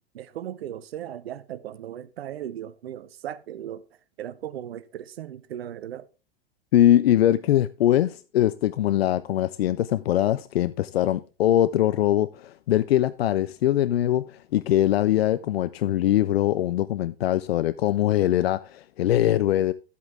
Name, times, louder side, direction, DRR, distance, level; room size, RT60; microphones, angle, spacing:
voice 1, 0.1-3.9 4.2-6.1, right 11 dB, 85° right, 0.7 m, -37 dB
voice 2, 6.7-19.7, left 12 dB, 85° left, 0.5 m, -22 dB
12.5 x 8.4 x 3.5 m
hypercardioid pair, 95°, 30 cm